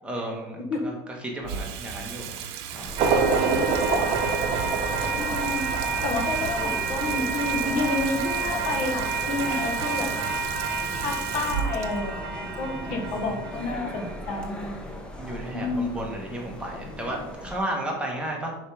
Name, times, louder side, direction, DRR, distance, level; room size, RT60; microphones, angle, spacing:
voice 1, 0.0-2.3 2.7-2.9 12.8-13.0 13.3-13.4 15.2-18.5, right 1 dB, 10° right, -1 dB, 1.4 m, -33 dB
Water tap faucet / Sink (filling or washing), 1.4-13.8, right 8 dB, 80° right, 0.8 m, -37 dB
sound 1, 2.7-17.6, left 1 dB, 5° left, 0.9 m, -38 dB
sound 2, 3.0-14.1, right 5 dB, 45° right, 1.0 m, -28 dB
voice 2, 3.3-4.0 5.2-5.7 6.0-10.1 11.0-14.7 15.5-15.9, left 3 dB, 60° left, 2 dB, 1.4 m, -30 dB
5.4 x 4.8 x 5.0 m, 0.93 s
cardioid pair, 140°, 13 cm